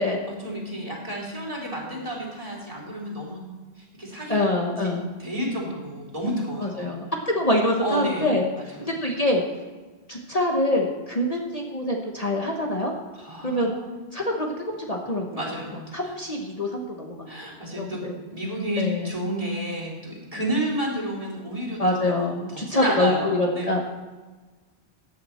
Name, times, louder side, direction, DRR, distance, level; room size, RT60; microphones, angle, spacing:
voice 1, 0.3-3.4 3.8-4.4 4.8-4.9 5.2-6.9 7.8-8.3 8.5-8.9 13.1-13.9 15.3-15.7 16.0-16.2 17.3-23.7, equal, 30° right, -3 dB, 3.4 m, -31 dB
voice 2, 4.3-5.0 6.8-9.4 10.1-12.9 13.4-13.7 14.1-14.5 14.8-15.4 15.9-17.3 17.8-18.1 18.8-19.1 21.8-23.8, left 1 dB, 35° left, 0 dB, 1.3 m, -25 dB
14.5 x 9.5 x 4.4 m, 1.3 s
omnidirectional pair, 1.1 m